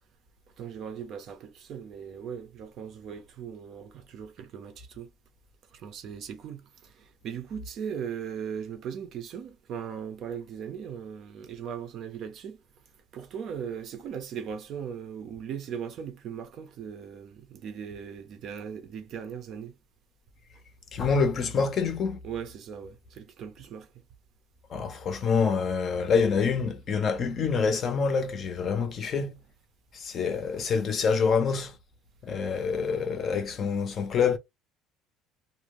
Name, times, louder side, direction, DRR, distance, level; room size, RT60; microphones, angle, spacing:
voice 1, 0.6-5.1 5.7-12.6 13.1-19.7 22.2-23.9, right 7 dB, 45° right, 0.6 m, -38 dB
voice 2, 20.9-22.2 24.7-29.4 29.9-31.7 32.2-34.4, left 5 dB, 35° left, 0.6 m, -26 dB
2.6 x 2.1 x 3.0 m
cardioid pair, 170°, 0 cm